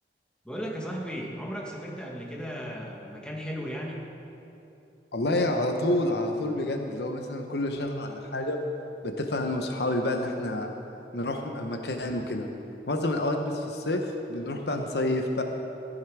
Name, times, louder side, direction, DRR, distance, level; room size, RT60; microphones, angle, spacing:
voice 1, 0.4-4.0, equal, 5° left, -2 dB, 1.5 m, -35 dB
voice 2, 5.1-8.7 9.0-10.7 11.1-12.5 12.9-15.4, left 1 dB, 65° left, 4 dB, 0.9 m, -28 dB
14.0 x 10.5 x 4.7 m, 2.8 s
head